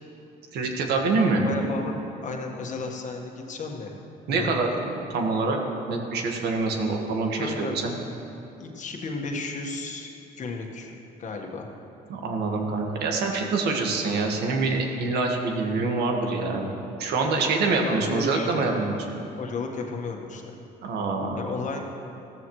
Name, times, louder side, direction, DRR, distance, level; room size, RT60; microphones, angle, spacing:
voice 1, 0.5-1.4 4.3-5.6 5.9-7.9 12.1-16.7 17.0-18.9 20.8-21.4, right 3 dB, 75° right, 2 dB, 1.7 m, -25 dB
voice 2, 1.4-4.0 4.3-4.8 7.3-7.7 8.6-10.1 10.4-10.9 11.2-11.7 17.6-18.7 19.4-20.4 21.4-21.8, left 3 dB, 45° left, 2 dB, 1.6 m, -33 dB
15.5 x 14.0 x 3.2 m, 2.8 s
cardioid pair, 110°, 17 cm